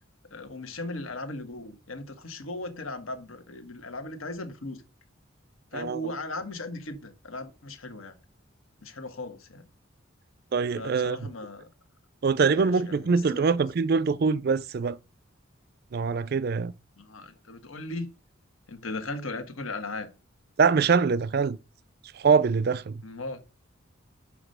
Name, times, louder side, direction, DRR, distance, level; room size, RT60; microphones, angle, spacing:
voice 1, 0.3-4.8 5.7-8.1 8.8-9.6 10.8-11.7 12.4-13.5 17.0-18.1 18.7-20.1 23.0-23.4, left 2 dB, 90° left, 1.5 m, -37 dB
voice 2, 10.5-11.3 12.2-15.0 15.9-16.7 20.6-21.6 22.2-23.0, right 5 dB, 50° right, 0.4 m, -24 dB
6.0 x 5.1 x 6.6 m
head